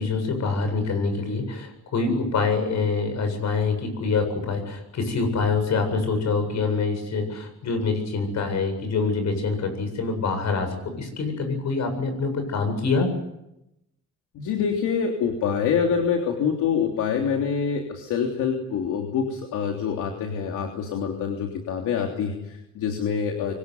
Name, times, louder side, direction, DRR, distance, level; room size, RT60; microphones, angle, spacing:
voice 1, 0.0-13.1, left 4 dB, 65° left, 7 dB, 8.0 m, -25 dB
voice 2, 14.3-23.5, left 7 dB, 85° left, 2 dB, 3.3 m, -26 dB
24.5 x 19.5 x 9.6 m, 0.88 s
cardioid pair, 90°, 30 cm